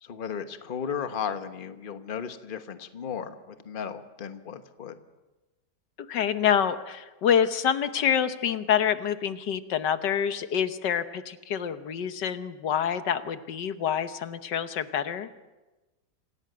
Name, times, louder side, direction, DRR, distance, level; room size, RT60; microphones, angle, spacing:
voice 1, 0.0-5.0, left 7 dB, 35° left, 9 dB, 1.2 m, -35 dB
voice 2, 6.1-15.3, left 8 dB, 90° left, 11 dB, 1.7 m, -27 dB
26.5 x 16.5 x 7.9 m, 1.1 s
omnidirectional pair, 1.8 m